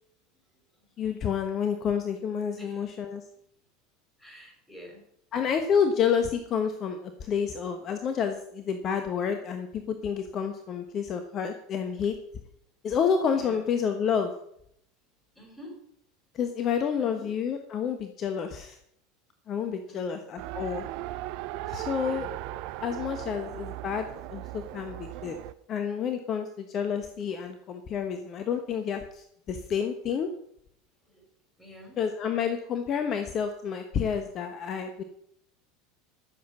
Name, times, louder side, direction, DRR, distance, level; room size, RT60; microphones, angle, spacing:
voice 1, 0.5-1.3 2.5-2.9 4.2-5.0 10.7-10.8 13.3-13.6 15.3-15.8 17.0-17.3 19.9-20.3 22.0-22.4 22.7-22.8 31.0-31.3 31.6-32.0, equal, 5° left, 1 dB, 6.2 m, -49 dB
voice 2, 1.0-3.2 5.3-12.2 12.8-14.3 16.3-18.8 19.5-20.9 21.7-22.3 22.8-25.4 25.7-30.3 32.0-35.0, left 7 dB, 40° left, 7 dB, 1.2 m, -29 dB
Race car auto racing, 20.4-25.5, right 16 dB, 60° right, 0.6 m, -37 dB
14.0 x 7.4 x 6.1 m, 0.71 s
hypercardioid pair, 80°, 0 cm